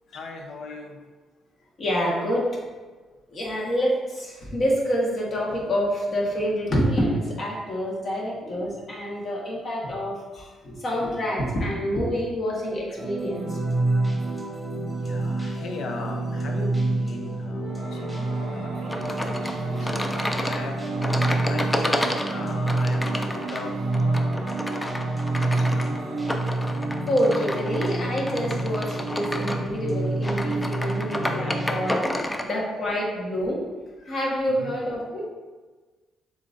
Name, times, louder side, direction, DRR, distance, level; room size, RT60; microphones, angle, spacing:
voice 1, 0.1-1.0 15.0-20.8 21.5-24.5 25.4-26.0 34.5-34.8, left 3 dB, 70° left, 2 dB, 0.6 m, -38 dB
voice 2, 1.8-2.6 3.3-13.6 27.1-33.6 34.0-35.3, equal, 50° left, -3 dB, 1.3 m, -27 dB
sound 1, 13.0-31.8, right 2 dB, 5° right, 1.1 m, -28 dB
Singing / Musical instrument, 17.7-27.7, right 1 dB, 80° right, 0.6 m, -41 dB
sound 2, 18.9-32.5, left 1 dB, 10° left, 0.4 m, -31 dB
7.0 x 2.6 x 2.6 m, 1.3 s
cardioid pair, 90°, 0 cm